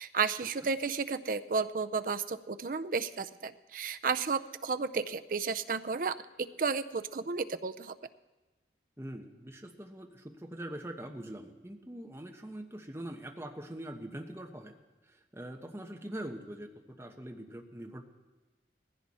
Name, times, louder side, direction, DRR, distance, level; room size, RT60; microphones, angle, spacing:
voice 1, 0.0-6.2 6.6-7.9, right 5 dB, 45° right, 11 dB, 0.5 m, -32 dB
voice 2, 9.0-14.7 15.0-16.7 17.0-18.0, right 1 dB, 15° right, 2 dB, 1.0 m, -43 dB
19.0 x 15.5 x 4.2 m, 1.1 s
head